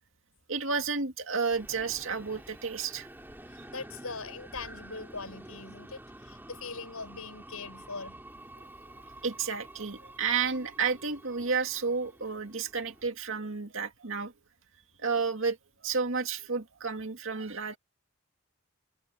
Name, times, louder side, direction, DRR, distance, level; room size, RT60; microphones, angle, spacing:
voice 1, 0.5-3.1 9.2-14.3 15.0-15.6 15.8-17.8, right 5 dB, 65° right, 2.2 m, -31 dB
sound 1, 1.5-13.0, right 1 dB, 10° right, 4.3 m, -49 dB
voice 2, 3.5-8.2, left 4 dB, 85° left, 6.4 m, -41 dB
head